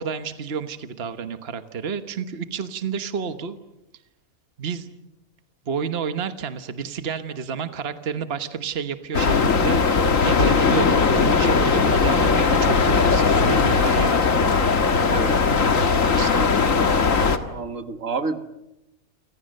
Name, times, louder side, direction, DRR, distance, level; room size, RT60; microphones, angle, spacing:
voice 1, 0.0-3.6 4.6-4.9 5.6-9.9 10.2-14.4 15.2-15.3 16.1-16.5 17.4-17.5, right 6 dB, 50° right, 9 dB, 1.4 m, -30 dB
sound 1, 9.1-17.4, left 4 dB, 70° left, 2.1 m, -19 dB
voice 2, 17.5-18.4, right 4 dB, 70° right, 9 dB, 1.9 m, -28 dB
29.5 x 25.5 x 6.6 m, 0.90 s
omnidirectional pair, 1.4 m